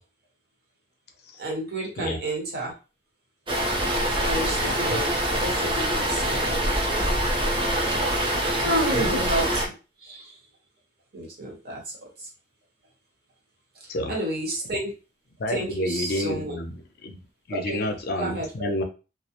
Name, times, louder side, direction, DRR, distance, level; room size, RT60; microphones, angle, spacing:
voice 1, 1.4-2.7 4.2-5.1 5.4-7.0 8.6-9.6 10.0-10.4 11.1-11.8 14.1-14.9 15.5-16.6 17.5-17.8 18.2-18.7, right 1 dB, 55° right, -1 dB, 0.9 m, -30 dB
sound 1, 3.5-9.7, right 1 dB, 25° right, 0.5 m, -25 dB
voice 2, 4.7-5.0 8.6-9.2 13.9-14.2 15.4-17.2 17.5-18.8, left 1 dB, 55° left, 5 dB, 0.5 m, -30 dB
2.3 x 2.0 x 2.8 m, 0.32 s
head